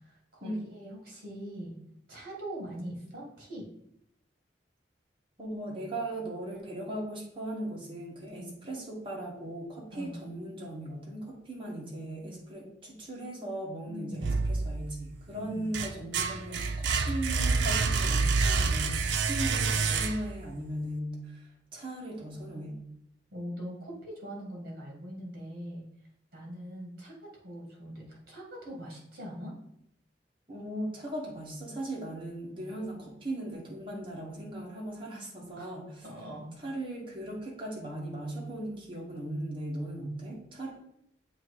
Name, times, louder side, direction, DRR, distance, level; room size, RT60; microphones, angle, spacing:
voice 1, 0.0-1.8 2.1-3.7 8.4-8.5 9.9-10.2 13.9-14.3 15.3-15.8 23.3-25.8 26.3-29.6 35.5-35.7 36.0-36.5, equal, 55° right, -2 dB, 2.0 m, -42 dB
voice 2, 5.4-22.8 30.5-36.0 36.6-40.7, right 1 dB, 30° right, -3 dB, 1.5 m, -38 dB
sound 1, 14.2-15.0 15.5-20.5, right 4 dB, 70° right, 0.5 m, -28 dB
7.1 x 2.8 x 4.7 m, 0.76 s
head